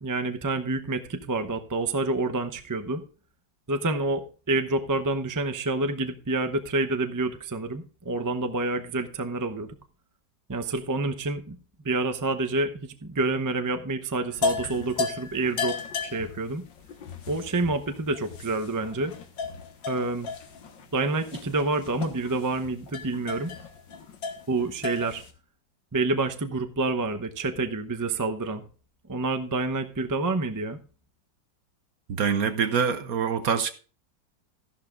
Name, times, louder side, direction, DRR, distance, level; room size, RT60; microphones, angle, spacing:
voice 1, 0.0-3.0 3.7-9.7 10.5-11.6 11.8-15.8 16.0-16.6 17.3-19.1 19.9-20.3 20.9-23.5 24.5-25.2 25.9-28.6 29.1-30.8, right 2 dB, 25° right, 0.4 m, -28 dB
sound 1, 14.3-25.3, left 5 dB, 85° left, 2.1 m, -35 dB
voice 2, 32.1-33.7, right 6 dB, 60° right, 1.2 m, -25 dB
14.0 x 11.5 x 2.5 m
omnidirectional pair, 1.9 m